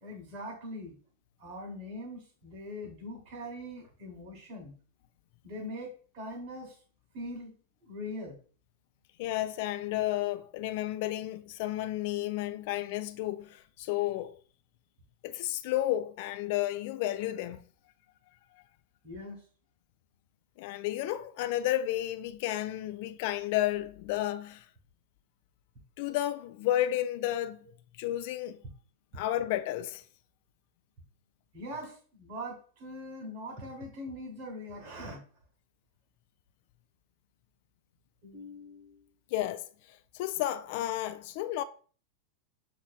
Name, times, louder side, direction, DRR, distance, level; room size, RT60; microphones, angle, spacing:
voice 1, 0.0-1.0 1.4-4.7 5.4-6.8 7.1-7.5 7.8-8.4 19.0-19.4 31.5-35.2 38.2-39.1, left 1 dB, 40° right, 1.0 m, -42 dB
voice 2, 9.2-14.4 15.2-17.6 20.6-24.7 26.0-27.7 28.0-28.6 29.1-30.0 39.3-41.6, left 14 dB, 50° left, 0.3 m, -32 dB
6.1 x 2.5 x 2.3 m
figure-of-eight pair, 90°, 0 cm